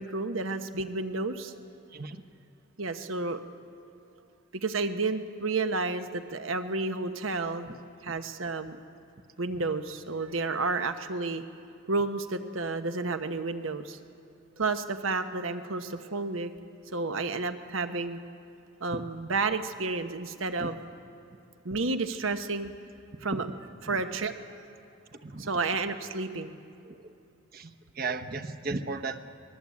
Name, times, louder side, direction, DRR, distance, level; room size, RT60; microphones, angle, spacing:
voice 1, 0.0-1.5 2.8-3.4 4.5-7.7 8.0-8.8 9.4-11.4 11.9-14.0 14.6-16.5 16.9-18.2 18.8-20.8 21.6-22.7 23.2-23.5 23.8-24.4 25.4-26.6, right 3 dB, 75° right, 9 dB, 1.2 m, -31 dB
voice 2, 27.5-29.2, right 3 dB, 45° right, 5 dB, 1.1 m, -35 dB
25.0 x 20.0 x 8.5 m, 2.6 s
head